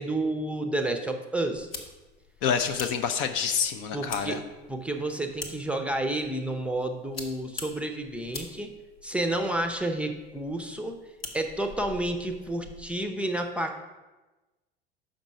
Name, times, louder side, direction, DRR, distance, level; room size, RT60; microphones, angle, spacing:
voice 1, 0.0-1.7 3.9-4.4 4.7-8.7 9.0-11.0 11.3-13.8, right 1 dB, 5° right, 5 dB, 0.6 m, -30 dB
sound 1, 1.5-13.0, left 3 dB, 80° left, 1.0 m, -45 dB
voice 2, 2.4-4.4, left 7 dB, 40° left, 8 dB, 0.5 m, -27 dB
6.0 x 5.2 x 5.3 m, 1.1 s
figure-of-eight pair, 70°, 29 cm